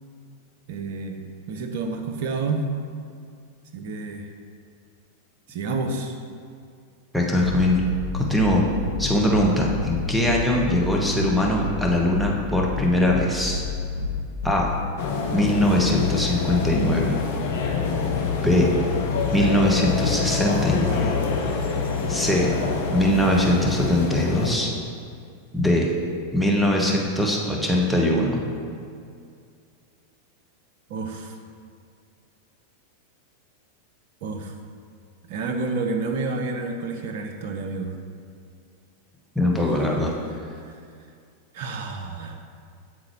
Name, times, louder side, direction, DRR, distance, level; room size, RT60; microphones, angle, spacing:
voice 1, 0.7-1.2 1.5-2.6 3.7-4.3 5.5-6.2 30.9-31.4 34.2-34.5 35.3-37.9 41.5-42.4, right 3 dB, 50° right, 5 dB, 0.5 m, -29 dB
voice 2, 7.1-7.8 8.1-8.6 9.0-13.6 14.4-14.7 15.3-17.1 18.4-18.7 19.3-21.1 22.1-22.5 22.9-24.7 25.5-25.9 26.3-28.4 39.3-40.1, left 1 dB, ahead, -2 dB, 0.9 m, -21 dB
sound 1, 7.4-14.9, left 4 dB, 85° left, 1.0 m, -30 dB
sound 2, 15.0-24.6, left 5 dB, 55° left, 0.6 m, -26 dB
8.5 x 3.7 x 3.2 m, 2.3 s
figure-of-eight pair, 90°, 0 cm